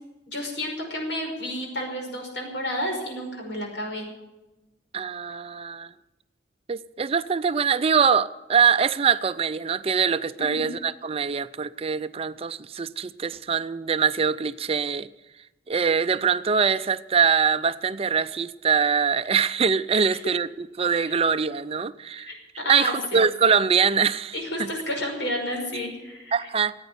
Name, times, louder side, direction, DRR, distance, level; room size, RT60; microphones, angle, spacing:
voice 1, 0.3-4.1 10.5-10.7 19.9-20.0 21.1-21.2 22.3-23.2 24.3-26.4, equal, 80° left, 5.5 m, -31 dB
voice 2, 4.9-5.9 6.7-15.1 15.7-22.3 22.7-24.7 26.3-26.7, right 6 dB, 35° right, 0.5 m, -23 dB
15.5 x 9.1 x 9.5 m
head